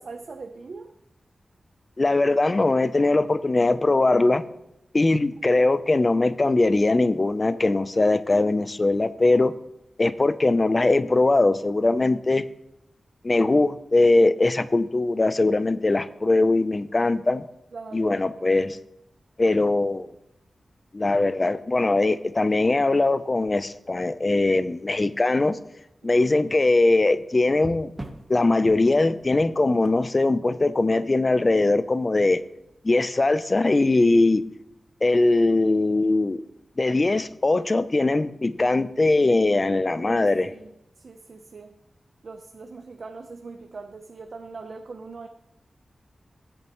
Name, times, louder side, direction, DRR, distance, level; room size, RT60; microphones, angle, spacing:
voice 1, 0.0-0.9 17.7-18.2 26.0-26.3 40.0-40.7 41.0-41.7 42.2-45.3, right 4 dB, 60° right, 5 dB, 0.7 m, -40 dB
voice 2, 2.0-4.4 4.9-9.5 10.0-12.5 13.2-17.4 17.9-18.8 19.4-20.1 20.9-25.6 26.0-27.9 28.3-32.4 32.8-34.4 35.0-36.4 36.8-40.5, left 2 dB, 30° left, 13 dB, 0.6 m, -21 dB
sound 1, 18.6-18.9 20.4-20.5 21.2-21.3 23.5-24.3 24.8-25.0 27.5-31.2 35.0-35.2, right 2 dB, 20° right, 1.1 m, -44 dB
20.0 x 8.8 x 3.1 m, 0.87 s
wide cardioid pair, 115°, 0 cm